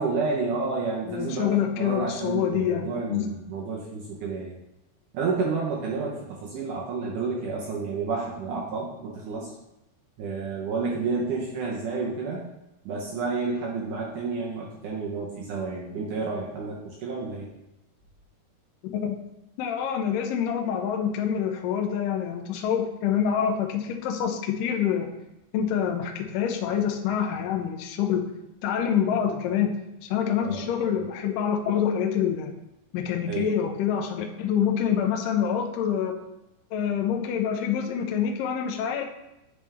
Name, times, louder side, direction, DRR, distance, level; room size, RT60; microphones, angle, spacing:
voice 1, 0.0-4.5 5.1-9.5 10.2-12.4 12.9-17.5 30.4-30.7 33.3-33.5, right 4 dB, 75° right, -3 dB, 1.9 m, -30 dB
voice 2, 1.1-3.3 18.9-19.2 19.6-25.1 25.5-28.3 28.6-29.8 30.1-32.5 32.9-36.2 36.7-39.1, left 8 dB, 85° left, 4 dB, 1.9 m, -26 dB
8.8 x 3.5 x 3.3 m, 0.92 s
omnidirectional pair, 4.6 m